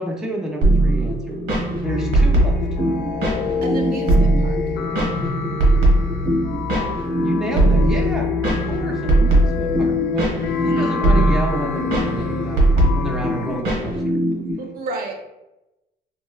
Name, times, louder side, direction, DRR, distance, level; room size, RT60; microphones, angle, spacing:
voice 1, 0.0-1.4 1.8-2.6 6.7-6.9 7.2-14.2, equal, 5° right, -1 dB, 0.4 m, -30 dB
sound 1, 0.6-14.5, right 1 dB, 80° right, 1.0 m, -20 dB
sound 2, 1.8-13.6, left 6 dB, 75° left, 0.4 m, -27 dB
voice 2, 3.6-4.6 10.4-11.0 14.6-15.2, right 2 dB, 60° right, 2 dB, 0.6 m, -32 dB
3.1 x 2.9 x 2.3 m, 0.96 s
cardioid pair, 110°, 17 cm